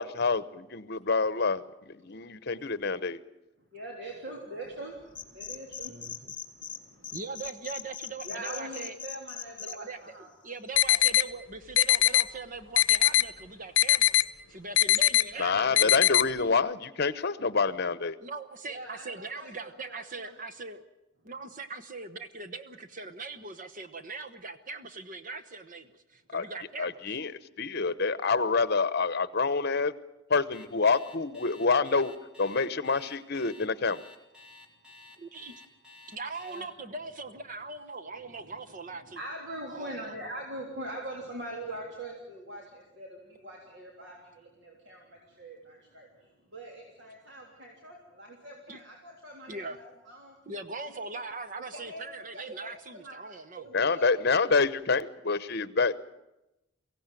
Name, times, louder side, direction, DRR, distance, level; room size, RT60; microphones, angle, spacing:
voice 1, 0.0-3.2 15.4-18.2 26.3-26.5 26.8-27.3 27.6-29.9 30.3-32.1 32.4-34.0 53.7-56.0, left 4 dB, 60° left, 15 dB, 1.0 m, -27 dB
voice 2, 3.7-7.2 8.2-10.3 10.9-11.2 18.6-20.3 36.4-36.6 38.2-38.5 39.0-50.3 50.9-51.2 51.7-54.1, right 1 dB, 65° right, 0 dB, 3.4 m, -43 dB
sound 1, 5.1-6.8 7.0-9.7, left 8 dB, 25° left, 2.3 m, -39 dB
voice 3, 5.9-6.3 7.1-8.9 9.6-14.1 14.5-16.1 18.2-20.8 21.2-27.2 35.2-35.6 36.1-39.2 39.7-40.1 48.7-48.8 49.5-49.8 50.5-53.7, right 3 dB, 45° right, 11 dB, 1.1 m, -41 dB
sound 2, 10.8-11.2 11.8-12.2 12.8-13.2 13.8-14.2 14.8-15.2 15.8-16.2, left 14 dB, 80° left, 0.8 m, -21 dB
Alarm, 30.5-36.6, left 3 dB, 5° right, 3.5 m, -52 dB
23.5 x 16.5 x 9.2 m, 0.94 s
head